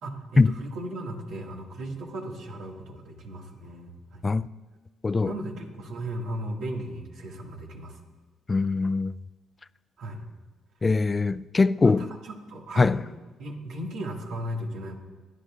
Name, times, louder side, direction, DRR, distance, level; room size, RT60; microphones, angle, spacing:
voice 1, 0.0-4.2 5.2-8.0 10.0-10.2 11.8-12.9 13.4-14.9, right 1 dB, 80° right, 2.0 m, -36 dB
voice 2, 8.5-9.1 10.8-12.1 12.8-13.0, left 3 dB, 25° left, 0.3 m, -22 dB
24.5 x 11.0 x 2.5 m
cardioid pair, 90°, 0 cm